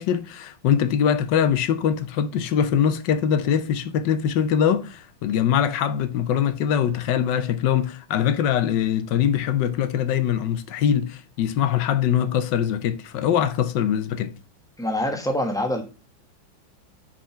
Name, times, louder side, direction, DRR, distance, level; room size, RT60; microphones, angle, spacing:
voice 1, 0.0-14.3, left 9 dB, 65° left, 1.3 m, -22 dB
voice 2, 14.8-15.8, left 1 dB, ahead, 0.9 m, -25 dB
5.7 x 5.1 x 5.6 m
omnidirectional pair, 2.2 m